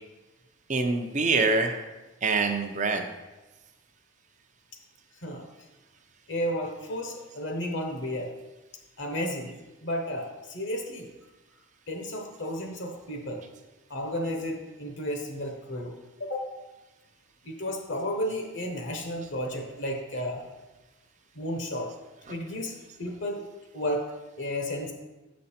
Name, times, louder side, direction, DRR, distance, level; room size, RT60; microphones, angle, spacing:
voice 1, 0.7-1.8 2.2-3.1 22.3-22.4, right 3 dB, 35° right, 5 dB, 0.6 m, -25 dB
voice 2, 6.3-8.3 9.0-9.5 9.8-11.1 11.9-13.4 13.9-15.9 16.2-16.5 17.4-20.4 21.3-21.9 22.3-23.4 23.7-24.1 24.4-24.9, equal, 55° left, 2 dB, 0.9 m, -32 dB
7.6 x 5.3 x 4.3 m, 1.1 s
head